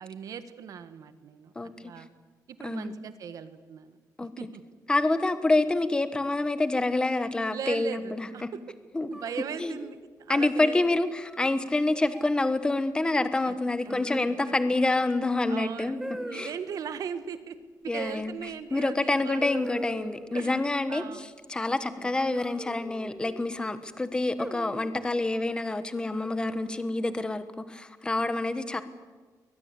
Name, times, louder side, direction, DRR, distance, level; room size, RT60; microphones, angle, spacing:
voice 1, 0.0-2.1 2.5-4.0 4.4-4.6 7.5-8.6 9.0-10.8 13.4-13.5 13.8-14.2 14.5-14.6 15.5-17.6 17.8-19.4 20.3-20.6 20.9-21.4 21.9-22.1, right 7 dB, 65° right, 11 dB, 1.6 m, -39 dB
voice 2, 2.6-3.0 4.2-4.3 4.9-8.5 8.9-9.1 9.6-9.8 10.3-16.0 16.3-16.5 17.9-18.4 18.7-28.8, left 2 dB, 15° left, 11 dB, 1.2 m, -27 dB
sound 1, 9.1-10.0 11.2-11.6 12.1-12.5 13.9-14.5 16.0-16.6 18.5-18.6 19.4-20.4 22.3-23.4 24.4-25.0 26.2-26.8, right 1 dB, 5° right, 1.9 m, -40 dB
22.0 x 20.5 x 8.3 m, 1.4 s
wide cardioid pair, 165°, 7 cm